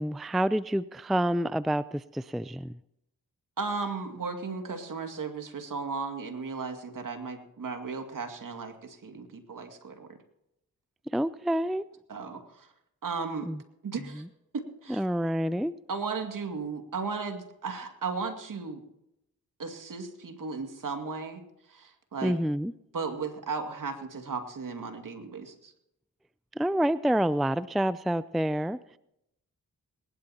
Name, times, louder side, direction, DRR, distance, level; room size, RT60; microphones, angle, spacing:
voice 1, 0.0-2.8 11.1-11.8 13.5-13.6 14.2-14.3 14.9-15.7 22.2-22.7 26.6-29.0, right 1 dB, ahead, 17 dB, 0.4 m, -28 dB
voice 2, 3.6-10.2 12.1-12.7 13.0-13.5 13.8-14.2 14.5-15.0 15.9-18.8 19.6-21.4 21.7-22.4 22.9-25.7, right 4 dB, 60° right, 5 dB, 2.4 m, -35 dB
21.5 x 12.0 x 2.9 m, 0.81 s
supercardioid pair, 45°, 36 cm